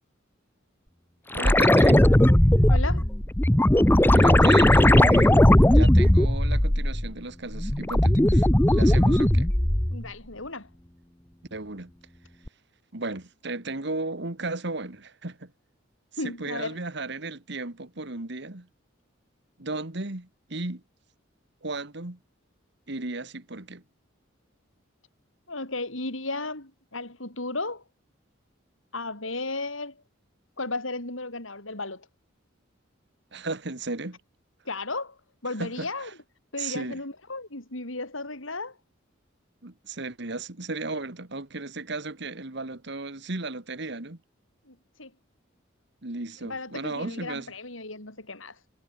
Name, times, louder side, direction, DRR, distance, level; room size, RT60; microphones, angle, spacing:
Crystal underwater, 1.3-7.1 7.5-10.0 12.5-12.6, left 1 dB, 10° left, 0.8 m, -18 dB
voice 1, 1.3-2.1 4.1-9.5 11.5-11.9 12.9-15.5 16.2-18.7 19.6-20.8 21.6-22.2 22.9-23.8 33.3-34.2 35.6-36.1 36.6-37.0 39.6-44.2 46.0-47.5, right 2 dB, 60° right, 2.0 m, -35 dB
voice 2, 2.7-3.1 9.9-10.7 16.2-16.8 25.5-27.8 28.9-30.0 30.6-32.1 34.6-36.1 36.5-38.8 44.7-45.1 46.5-48.5, left 2 dB, 80° left, 6.9 m, -34 dB
head